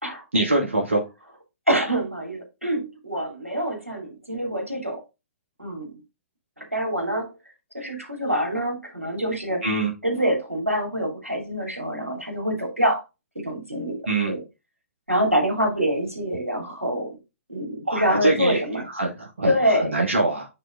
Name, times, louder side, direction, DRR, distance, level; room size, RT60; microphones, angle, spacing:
voice 1, 0.3-1.0 9.6-9.9 14.1-14.3 17.9-18.6 19.0-19.5 19.8-20.5, right 2 dB, 65° right, 2.1 m, -23 dB
voice 2, 1.7-5.0 5.6-5.9 6.6-7.3 7.7-9.7 10.0-13.0 13.3-14.4 15.1-17.2 17.5-18.9 19.4-19.9, equal, 90° right, 2.7 m, -25 dB
8.9 x 4.0 x 3.6 m
figure-of-eight pair, 120°, 7 cm